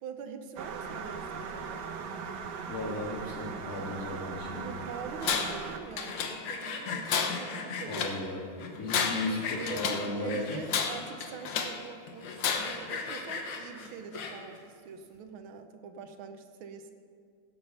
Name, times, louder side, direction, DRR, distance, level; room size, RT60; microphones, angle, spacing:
voice 1, 0.0-2.0 4.6-8.2 9.6-9.8 10.2-16.9, right 6 dB, 85° right, 8 dB, 1.7 m, -44 dB
sound 1, 0.6-5.8, right 5 dB, 65° right, 1.3 m, -39 dB
voice 2, 2.7-4.7 7.9-8.5 8.8-10.6, left 2 dB, 45° left, -2 dB, 2.5 m, -35 dB
Tools, 5.2-5.7 6.0-6.7 7.1-8.2 8.8-10.1 10.7-11.8 12.4-12.9, left 6 dB, 65° left, 1.5 m, -32 dB
Sawing, 5.9-8.1 8.6-9.8 10.3-10.9 11.3-11.4 11.6-11.7 12.1-14.6, left 5 dB, 85° left, 2.0 m, -38 dB
16.5 x 7.2 x 5.5 m, 2.2 s
omnidirectional pair, 2.2 m